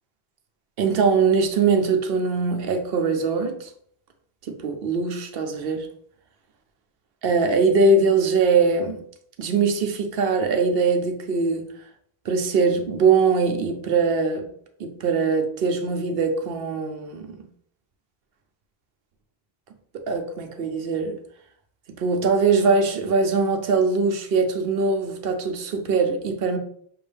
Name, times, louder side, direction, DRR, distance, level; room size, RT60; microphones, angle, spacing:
voice 1, 0.8-3.7 4.4-5.9 7.2-8.9 9.4-11.7 12.2-14.5 14.8-17.4 19.9-21.2 22.0-26.6, right 4 dB, 65° right, 5 dB, 0.8 m, -22 dB
5.8 x 2.6 x 3.3 m, 0.63 s
omnidirectional pair, 1.1 m